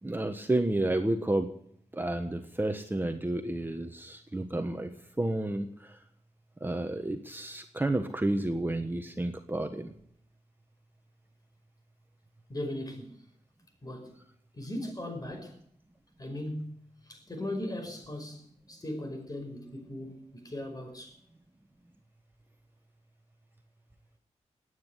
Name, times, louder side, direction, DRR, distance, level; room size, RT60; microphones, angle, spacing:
voice 1, 0.0-1.5 1.9-4.9 5.2-6.0 6.6-9.9, right 1 dB, 15° right, 1.3 m, -31 dB
voice 2, 12.5-13.1 13.8-14.1 14.5-15.6 16.2-16.8 17.1-21.1, left 1 dB, 30° left, 5.5 m, -38 dB
18.0 x 9.4 x 8.2 m
wide cardioid pair, 85°, 12 cm